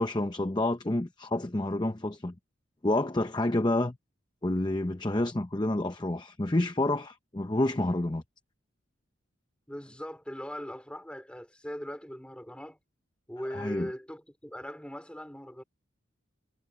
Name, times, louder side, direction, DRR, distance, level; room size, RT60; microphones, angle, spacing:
voice 1, 0.0-2.3 2.8-4.0 4.4-8.2 13.5-13.9, left 1 dB, 20° left, 0.8 m, -28 dB
voice 2, 9.7-12.8 13.3-15.6, equal, 5° left, 4.1 m, -40 dB
head